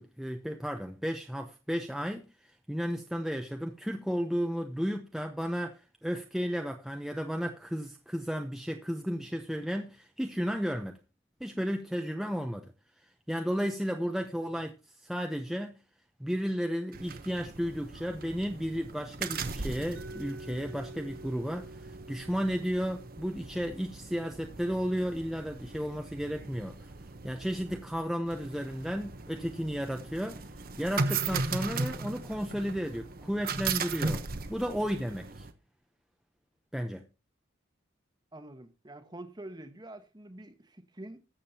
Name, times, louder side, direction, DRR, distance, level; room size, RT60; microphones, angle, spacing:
voice 1, 0.0-2.3 2.7-11.0 11.4-12.6 13.3-14.7 15.0-15.7 16.2-26.9 27.2-30.4 30.8-34.2 34.5-35.5 36.7-37.0, equal, ahead, 0.8 m, -33 dB
sound 1, 16.9-35.5, right 4 dB, 45° right, 1.0 m, -38 dB
Mallet percussion, 20.0-25.8, right 2 dB, 75° right, 2.3 m, -50 dB
voice 2, 38.3-41.2, right 1 dB, 20° right, 1.2 m, -46 dB
20.5 x 7.4 x 2.9 m
head